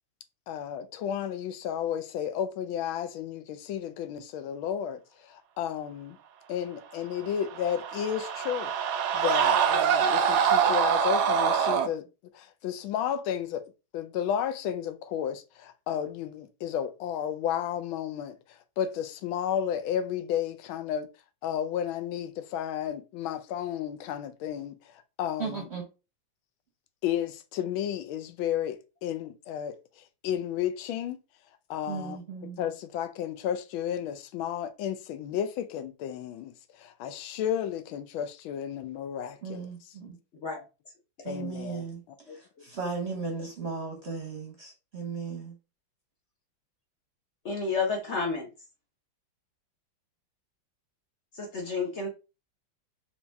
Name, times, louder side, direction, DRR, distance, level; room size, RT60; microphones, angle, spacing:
voice 1, 0.5-6.2 6.5-8.7 9.1-12.0 12.3-21.1 21.4-24.7 25.2-25.7 27.0-31.2 31.7-32.2 32.6-39.7 41.2-41.9, left 9 dB, 85° left, 1.4 m, -32 dB
sound 1, 7.4-11.9, right 7 dB, 70° right, 1.0 m, -25 dB
voice 2, 25.4-25.8 31.9-32.6 39.4-40.2 41.2-45.5, right 5 dB, 50° right, 0.9 m, -36 dB
voice 3, 47.4-48.5 51.4-52.1, left 4 dB, 50° left, 0.9 m, -30 dB
4.4 x 2.9 x 3.3 m
omnidirectional pair, 2.2 m